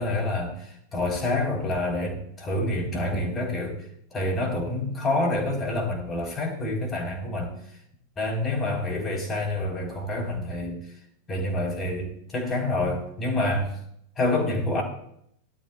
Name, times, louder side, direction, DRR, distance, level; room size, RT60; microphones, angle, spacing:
voice 1, 0.0-3.8 4.1-7.6 8.2-10.8 11.3-13.8 14.2-14.8, left 2 dB, 20° left, -1 dB, 4.3 m, -27 dB
17.5 x 12.5 x 2.4 m, 0.71 s
figure-of-eight pair, 90°, 0 cm